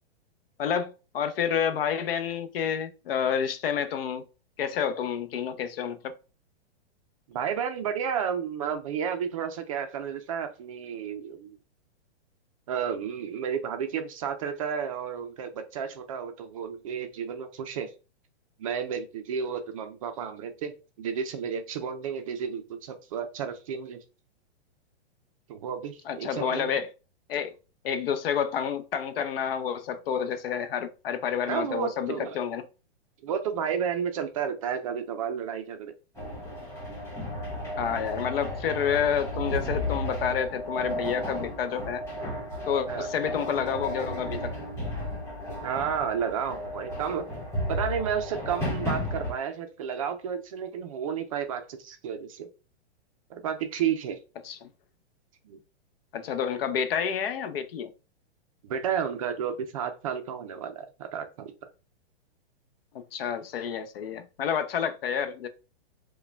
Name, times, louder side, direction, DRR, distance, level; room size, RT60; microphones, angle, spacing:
voice 1, 0.6-4.2 4.6-6.1 26.1-26.9 27.3-27.5 27.8-32.6 37.8-42.0 42.7-44.5 54.4-54.7 56.1-57.9 63.1-65.5, left 8 dB, 60° left, 0.7 m, -29 dB
voice 2, 7.3-11.6 12.7-17.9 18.6-24.0 25.5-26.7 31.5-32.4 33.2-35.9 42.9-43.1 45.6-47.2 47.7-52.5 53.3-54.2 55.4-55.6 58.6-61.5, right 7 dB, 35° right, 0.4 m, -32 dB
sound 1, 36.1-49.3, equal, 10° left, 1.3 m, -33 dB
4.8 x 2.2 x 3.3 m
hypercardioid pair, 160°, 32 cm